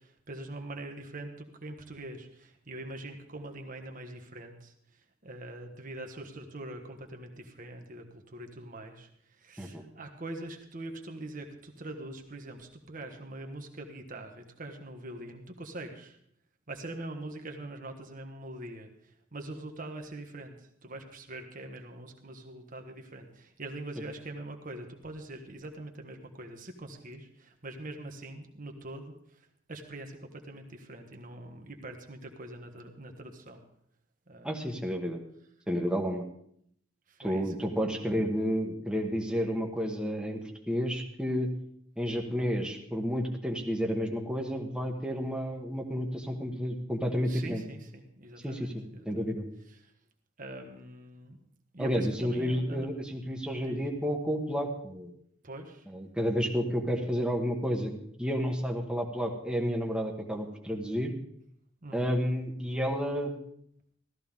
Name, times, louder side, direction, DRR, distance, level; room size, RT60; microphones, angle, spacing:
voice 1, 0.0-16.2 16.7-33.6 34.3-34.8 37.1-38.2 47.3-49.3 49.7-49.9 50.4-51.4 51.7-52.9 53.6-53.9 55.4-55.8 61.8-62.2, right 1 dB, 45° right, 4 dB, 1.5 m, -43 dB
voice 2, 34.4-35.2 35.7-36.2 37.2-41.5 42.0-47.6 48.4-49.5 51.8-55.1 55.9-57.9 58.2-61.1 61.9-63.4, equal, 5° right, 2 dB, 1.4 m, -31 dB
15.5 x 13.5 x 3.7 m, 0.69 s
head